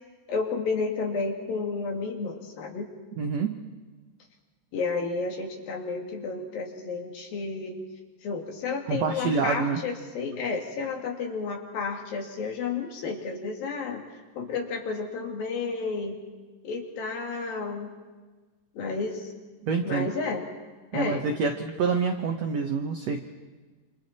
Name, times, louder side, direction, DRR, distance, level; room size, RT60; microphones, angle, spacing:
voice 1, 0.3-2.9 4.7-7.8 8.2-14.0 14.3-16.2 16.6-17.9 18.8-19.3 19.8-20.4 20.9-21.3, left 4 dB, 65° left, 2 dB, 3.8 m, -31 dB
voice 2, 3.2-3.6 8.9-9.8 19.6-20.1 20.9-23.3, right 5 dB, 80° right, 4 dB, 1.5 m, -27 dB
27.5 x 27.0 x 4.3 m, 1.3 s
omnidirectional pair, 4.7 m